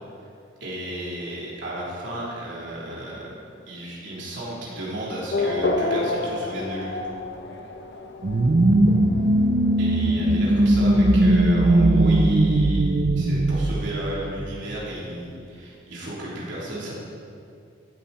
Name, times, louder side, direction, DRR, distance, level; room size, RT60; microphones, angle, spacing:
voice 1, 0.6-3.4 3.7-7.0 9.8-16.9, right 1 dB, 65° right, -6 dB, 3.5 m, -33 dB
Race car auto racing / Accelerating revving vroom, 5.3-11.4, left 2 dB, 60° left, 1.0 m, -30 dB
sound 1, 8.2-14.7, right 1 dB, 45° right, 0.6 m, -19 dB
15.0 x 11.5 x 4.3 m, 2.5 s
head